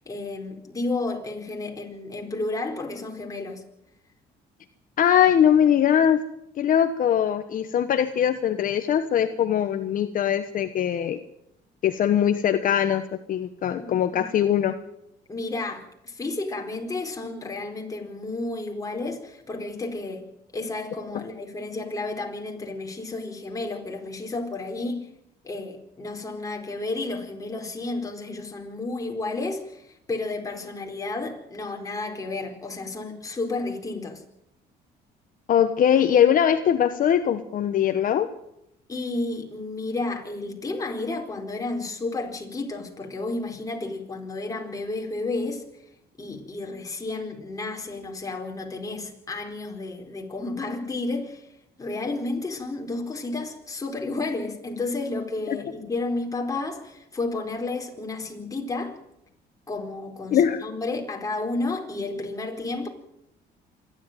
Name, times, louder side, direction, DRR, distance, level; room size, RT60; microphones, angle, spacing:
voice 1, 0.0-3.6 13.8-14.3 15.3-20.3 20.5-25.1 25.4-34.2 38.9-45.6 46.2-51.5 51.8-59.0 59.7-62.9, left 2 dB, 20° left, 4.3 m, -32 dB
voice 2, 5.0-6.2 6.6-11.2 11.8-13.0 13.3-14.7 35.5-38.3 55.5-55.6 60.3-60.6, left 9 dB, 55° left, 1.2 m, -21 dB
26.5 x 11.5 x 9.1 m
cardioid pair, 110°, 17 cm